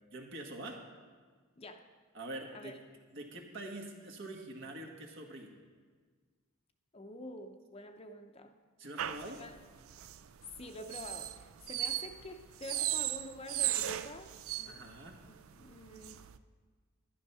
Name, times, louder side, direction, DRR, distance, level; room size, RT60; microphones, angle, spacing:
voice 1, 0.1-0.8 2.1-2.7 3.1-5.5 8.8-9.4 14.6-15.1, right 1 dB, 60° right, 1 dB, 1.7 m, -45 dB
voice 2, 6.9-8.5 9.4-9.5 10.6-14.3 14.6-14.9 15.3-16.2, left 1 dB, 30° left, 6 dB, 0.6 m, -47 dB
sound 1, 9.0-16.4, right 12 dB, 85° right, 0.4 m, -37 dB
11.0 x 10.5 x 5.6 m, 1.5 s
head